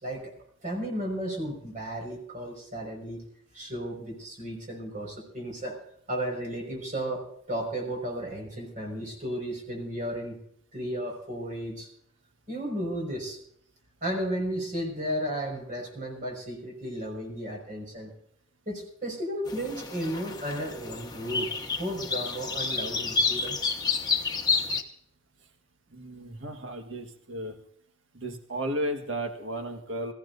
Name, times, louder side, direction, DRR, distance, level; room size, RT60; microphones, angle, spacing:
voice 1, 0.0-0.3 0.6-3.2 3.5-5.8 6.1-10.4 10.7-11.9 12.5-13.4 14.0-18.1 18.7-23.6, equal, 40° right, 0 dB, 5.3 m, -34 dB
sound 1, 19.5-24.8, left 4 dB, 20° left, 1.2 m, -30 dB
voice 2, 25.9-27.5 28.1-30.1, right 1 dB, 65° right, 4 dB, 1.6 m, -34 dB
25.0 x 15.0 x 2.7 m, 0.66 s
head